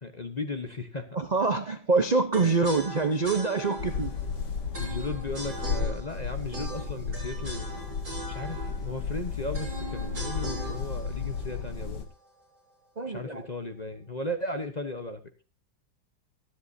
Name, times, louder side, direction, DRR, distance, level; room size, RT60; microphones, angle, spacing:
voice 1, 0.0-1.1 4.8-7.7 8.3-12.1 13.1-15.2, left 2 dB, 30° left, 7 dB, 0.9 m, -36 dB
voice 2, 1.1-4.1 13.0-13.5, right 3 dB, 40° right, 8 dB, 0.6 m, -25 dB
sound 1, 2.3-12.4, right 2 dB, 60° right, 8.4 m, -40 dB
sound 2, 3.8-12.1, left 5 dB, 70° left, 2.1 m, -33 dB
24.0 x 8.0 x 2.7 m, 0.33 s
omnidirectional pair, 2.0 m